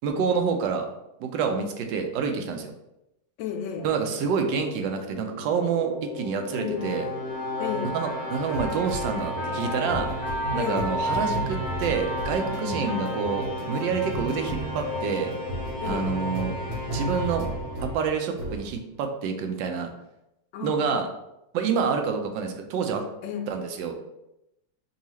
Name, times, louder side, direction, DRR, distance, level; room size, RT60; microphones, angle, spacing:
voice 1, 0.0-0.9 1.2-2.7 3.8-7.1 7.9-10.1 10.5-15.3 15.8-16.6 16.9-17.5 17.8-19.9 20.6-21.1 21.5-23.0 23.5-23.9, right 6 dB, 85° right, 5 dB, 1.3 m, -27 dB
voice 2, 3.4-3.9 6.5-6.9 7.6-7.9 10.5-10.9 12.8-12.9 15.8-16.2 20.5-20.8 23.2-23.5, left 8 dB, 80° left, 4 dB, 1.3 m, -32 dB
sound 1, 3.8-18.0 18.4-18.7, right 1 dB, 55° right, 0.9 m, -36 dB
sound 2, 5.3-18.3, left 1 dB, 30° left, 0.4 m, -33 dB
Trumpet, 8.0-15.1, left 1 dB, 50° left, 1.2 m, -41 dB
5.4 x 2.4 x 3.0 m, 0.88 s
omnidirectional pair, 2.0 m